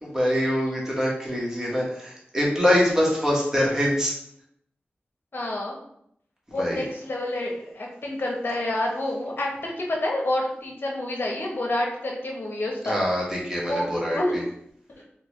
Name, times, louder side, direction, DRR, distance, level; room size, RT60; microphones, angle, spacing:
voice 1, 0.0-4.2 6.5-6.8 12.8-14.4, equal, 15° right, -4 dB, 1.3 m, -24 dB
voice 2, 5.3-5.7 6.5-13.0 13.7-14.4, left 1 dB, 60° left, -1 dB, 0.9 m, -28 dB
3.5 x 2.3 x 3.1 m, 0.72 s
wide cardioid pair, 55°, 4 cm